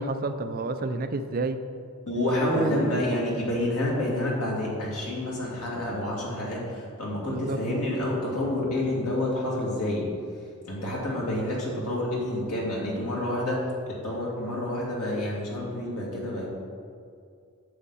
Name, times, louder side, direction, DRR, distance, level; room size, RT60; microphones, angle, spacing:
voice 1, 0.0-1.6 2.5-3.0 7.2-7.6, right 3 dB, 40° right, 9 dB, 0.4 m, -30 dB
voice 2, 2.1-10.1 10.7-16.5, left 1 dB, 85° left, -4 dB, 2.4 m, -28 dB
9.3 x 7.2 x 4.1 m, 2.3 s
head